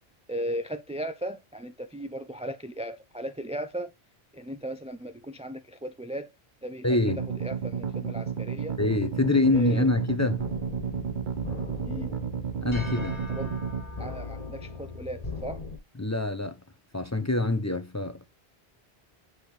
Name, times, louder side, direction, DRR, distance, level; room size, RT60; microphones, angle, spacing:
voice 1, 0.3-3.9 4.3-6.3 6.6-7.0 7.4-8.8 9.5-9.9 11.9-12.1 13.2-13.5 14.0-15.6, right 1 dB, 10° right, 0.3 m, -36 dB
voice 2, 6.8-7.3 8.8-10.5 12.6-13.2 16.0-16.6 16.9-18.2, left 2 dB, 20° left, 0.6 m, -25 dB
sound 1, 7.1-13.8, right 7 dB, 50° right, 1.0 m, -32 dB
sound 2, 10.4-15.8, left 2 dB, 40° left, 1.7 m, -38 dB
8.6 x 4.8 x 3.2 m
omnidirectional pair, 1.1 m